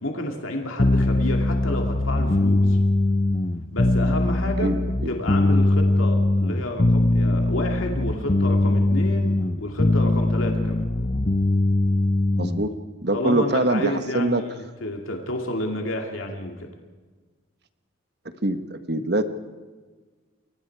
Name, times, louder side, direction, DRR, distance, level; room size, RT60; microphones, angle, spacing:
voice 1, 0.0-2.8 3.7-4.7 5.1-10.9 13.1-16.7, left 1 dB, 85° left, 2 dB, 2.6 m, -30 dB
sound 1, 0.8-12.7, left 2 dB, 35° left, 0.8 m, -21 dB
voice 2, 12.3-12.7 13.0-14.4 18.4-19.2, right 1 dB, 55° right, 9 dB, 1.4 m, -23 dB
30.0 x 22.5 x 4.8 m, 1.4 s
head